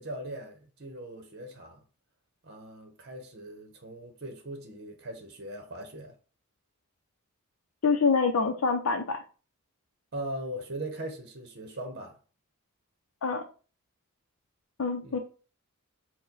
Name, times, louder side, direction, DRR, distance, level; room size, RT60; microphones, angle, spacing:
voice 1, 0.0-1.8 2.4-6.1 10.1-12.2 15.0-15.2, right 1 dB, 50° right, 0.9 m, -40 dB
voice 2, 7.8-9.2 13.2-13.4 14.8-15.2, left 4 dB, 70° left, 0.5 m, -25 dB
4.7 x 2.2 x 3.9 m
head